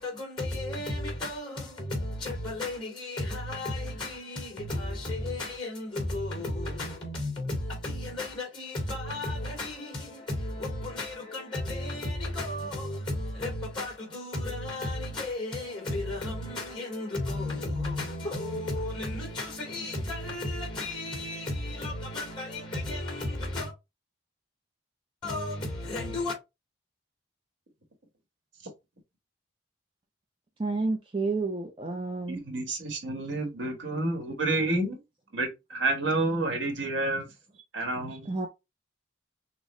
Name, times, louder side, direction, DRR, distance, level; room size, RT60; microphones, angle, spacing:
voice 1, 0.0-23.7 25.2-26.3, left 1 dB, 25° left, 2.7 m, -33 dB
voice 2, 30.6-32.4 38.3-38.5, right 3 dB, 25° right, 0.6 m, -30 dB
voice 3, 32.3-35.0 35.3-37.3 37.7-38.3, right 2 dB, 75° right, 1.4 m, -29 dB
6.3 x 2.3 x 3.2 m
head